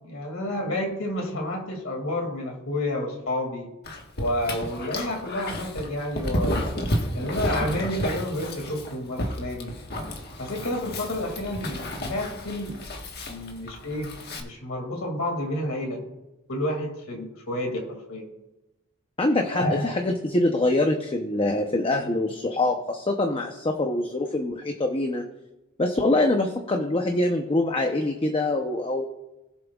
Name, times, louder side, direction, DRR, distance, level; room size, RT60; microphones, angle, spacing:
voice 1, 0.0-3.7 4.2-6.7 7.1-9.7 10.4-12.8 13.3-16.0 16.5-18.3 19.5-19.9, left 1 dB, 80° left, 2 dB, 2.4 m, -30 dB
Dog, 3.8-14.4, left 1 dB, 50° left, 1.4 m, -32 dB
voice 2, 19.2-25.3 25.8-29.1, left 2 dB, 25° left, 4 dB, 0.7 m, -24 dB
20.0 x 7.4 x 2.4 m, 0.99 s
head